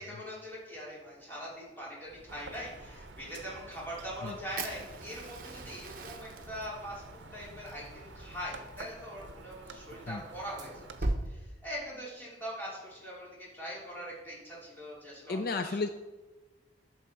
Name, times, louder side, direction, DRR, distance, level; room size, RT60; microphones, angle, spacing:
voice 1, 0.0-7.0 7.3-10.9 11.2-13.3 13.5-15.8, equal, 10° left, -7 dB, 3.2 m, -42 dB
sound 1, 2.0-8.8, equal, 75° left, 3.6 m, -56 dB
sound 2, 2.3-11.0, right 3 dB, 75° right, 0.7 m, -50 dB
Fire, 4.6-11.2, right 2 dB, 50° right, 0.9 m, -40 dB
voice 2, 15.3-15.9, left 3 dB, 55° left, 9 dB, 0.4 m, -32 dB
12.0 x 6.3 x 4.5 m, 1.1 s
head